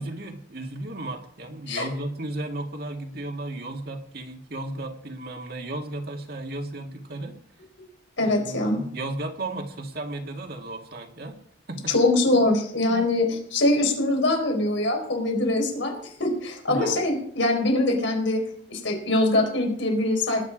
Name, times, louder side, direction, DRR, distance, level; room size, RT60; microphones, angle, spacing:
voice 1, 0.0-7.4 8.2-11.3 11.7-11.9 12.3-12.4 12.9-13.0 16.7-17.1, right 2 dB, 50° right, 3 dB, 1.9 m, -34 dB
voice 2, 8.2-8.8 11.9-18.4 18.7-20.4, left 2 dB, 75° left, 2 dB, 4.8 m, -23 dB
19.5 x 9.9 x 5.0 m, 0.63 s
head